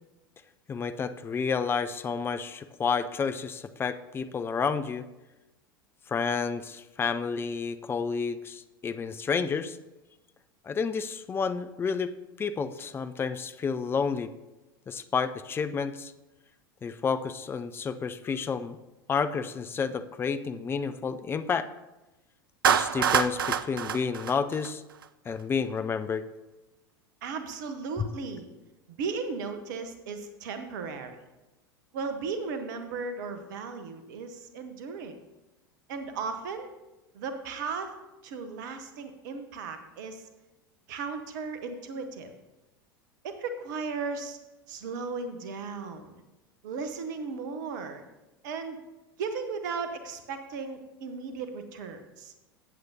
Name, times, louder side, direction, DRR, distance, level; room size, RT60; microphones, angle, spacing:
voice 1, 0.7-5.0 6.1-9.8 10.7-12.1 12.4-14.3 14.9-16.1 16.8-18.8 19.1-21.7 22.7-24.8 25.3-26.3 28.0-28.1, left 5 dB, 20° left, 11 dB, 0.5 m, -30 dB
Clapping, 22.6-25.0, right 8 dB, 70° right, 0.4 m, -26 dB
voice 2, 27.2-28.5 28.9-31.2 31.9-35.2 35.9-36.7 37.1-37.9 38.2-40.3 40.9-42.3 43.2-44.4 44.7-46.2 46.6-48.0 48.4-48.8 49.2-52.3, right 4 dB, 55° right, 8 dB, 1.1 m, -36 dB
15.0 x 7.9 x 2.9 m, 1.0 s
figure-of-eight pair, 80°, 12 cm